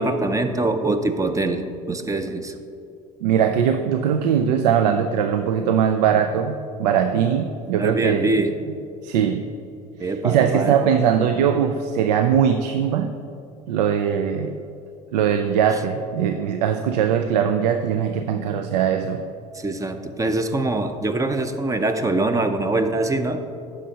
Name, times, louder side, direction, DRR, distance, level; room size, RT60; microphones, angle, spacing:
voice 1, 0.0-1.6 1.9-2.6 7.8-8.5 10.0-10.9 19.6-23.4, right 2 dB, 15° right, 8 dB, 0.6 m, -23 dB
voice 2, 3.2-8.3 9.0-9.5 10.0-13.1 13.7-14.6 15.1-19.2, right 8 dB, 85° right, 7 dB, 0.4 m, -21 dB
9.8 x 6.4 x 2.8 m, 2.6 s
hypercardioid pair, 80°, 21 cm